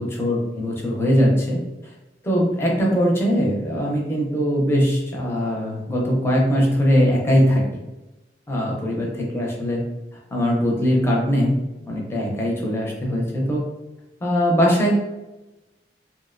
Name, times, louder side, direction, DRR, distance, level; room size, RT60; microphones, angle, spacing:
voice 1, 0.0-1.6 2.2-7.8 8.5-9.8 10.3-11.6 11.9-13.6 14.2-14.9, equal, 15° left, -3 dB, 0.5 m, -21 dB
2.5 x 2.1 x 2.4 m, 1.0 s
head